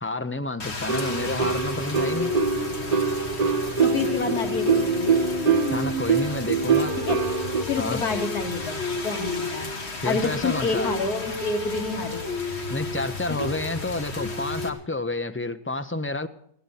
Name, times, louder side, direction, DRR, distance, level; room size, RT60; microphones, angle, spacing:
voice 1, 0.0-2.3 5.7-6.9 7.8-8.0 10.0-10.9 12.7-16.3, left 2 dB, 15° left, 8 dB, 0.4 m, -29 dB
Rain, 0.6-14.7, left 3 dB, 45° left, 2.3 m, -31 dB
sound 1, 0.9-7.6, right 6 dB, 40° right, 0.6 m, -24 dB
voice 2, 3.8-5.2 7.0-7.2 7.7-8.8 9.0-9.7 10.0-12.3 13.4-13.5, left 3 dB, 85° left, 3 dB, 2.9 m, -28 dB
21.0 x 16.5 x 4.2 m, 0.67 s
omnidirectional pair, 1.6 m